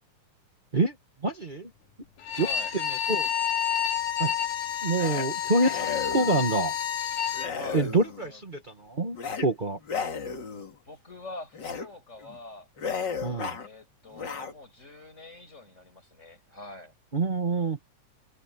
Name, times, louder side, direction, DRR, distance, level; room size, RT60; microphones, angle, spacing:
voice 1, 1.2-1.7 2.4-2.5 3.1-3.3 4.2-4.3 4.8-6.7 7.7-9.8 13.2-13.6 17.1-17.8, right 2 dB, 50° right, 0.5 m, -26 dB
Bowed string instrument, 2.2-7.5, left 9 dB, 80° left, 3.5 m, -29 dB
voice 2, 2.3-2.7 7.5-7.9 8.2-8.4 10.8-12.7 13.6-16.9, left 2 dB, 20° left, 6.3 m, -44 dB
sound 1, 5.0-5.3 5.6-6.5 7.3-8.3 9.1-9.5 9.8-10.7 11.5-11.9 12.2-12.4 12.8-13.7 14.1-14.5, left 6 dB, 40° left, 2.4 m, -34 dB
omnidirectional pair, 3.5 m